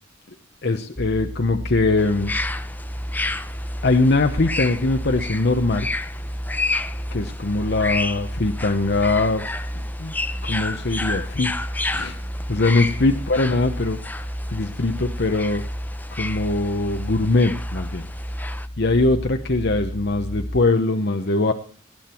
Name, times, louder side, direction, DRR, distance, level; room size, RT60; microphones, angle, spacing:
voice 1, 0.6-2.3 3.8-5.9 7.1-9.4 9.7-10.1 10.4-11.5 11.9-12.1 12.5-14.0 14.5-15.6 16.1-18.1 18.8-21.5, left 2 dB, 60° left, 6 dB, 0.9 m, -21 dB
sound 1, 1.0-20.6, equal, 35° left, 3.6 m, -32 dB
sound 2, 2.0-18.7, left 2 dB, 10° left, 0.6 m, -32 dB
19.0 x 9.5 x 4.5 m, 0.41 s
head